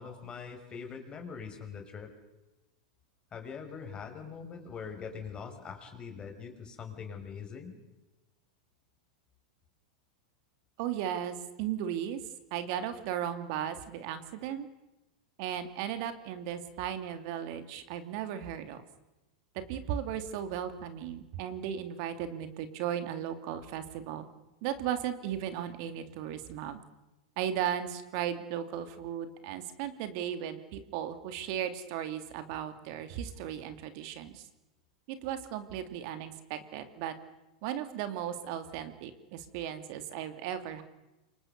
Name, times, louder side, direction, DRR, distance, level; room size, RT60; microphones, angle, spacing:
voice 1, 0.0-2.1 3.3-7.8, left 6 dB, 25° left, 5 dB, 5.7 m, -43 dB
voice 2, 10.8-12.2 12.5-14.7 15.4-18.8 19.5-24.3 24.6-26.8 27.4-34.4 35.1-37.1 37.6-40.8, right 10 dB, 55° right, 10 dB, 2.7 m, -36 dB
28.0 x 24.5 x 6.8 m, 1.0 s
hypercardioid pair, 100°, 4 cm